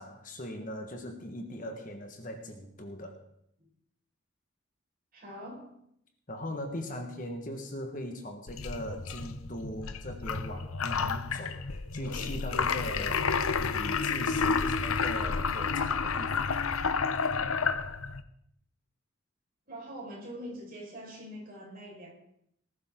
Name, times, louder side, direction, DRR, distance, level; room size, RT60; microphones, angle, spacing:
voice 1, 0.0-3.2 6.3-16.6, left 1 dB, 40° left, 4 dB, 1.7 m, -40 dB
voice 2, 5.1-5.7 19.7-22.1, equal, 45° right, -3 dB, 5.4 m, -43 dB
sound 1, 8.5-18.2, left 5 dB, 85° left, 0.8 m, -30 dB
19.5 x 12.0 x 3.9 m, 0.74 s
head